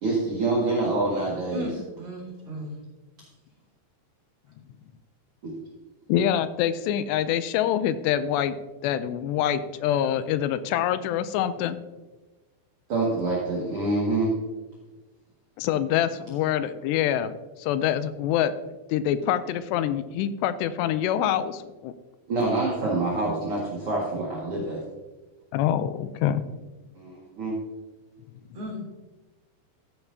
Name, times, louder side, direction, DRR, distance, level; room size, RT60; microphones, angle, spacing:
voice 1, 0.0-1.6 5.4-5.5 12.9-14.3 22.3-24.8 26.9-27.5, right 2 dB, 50° right, -5 dB, 1.7 m, -26 dB
voice 2, 1.5-2.8 28.5-28.8, left 1 dB, 35° right, 0 dB, 3.0 m, -35 dB
voice 3, 6.1-8.6 8.8-11.8 15.6-17.3 17.6-18.5 18.9-21.9 25.5-26.5, left 10 dB, 80° left, 12 dB, 2.6 m, -25 dB
14.5 x 9.2 x 2.7 m, 1.2 s
omnidirectional pair, 5.2 m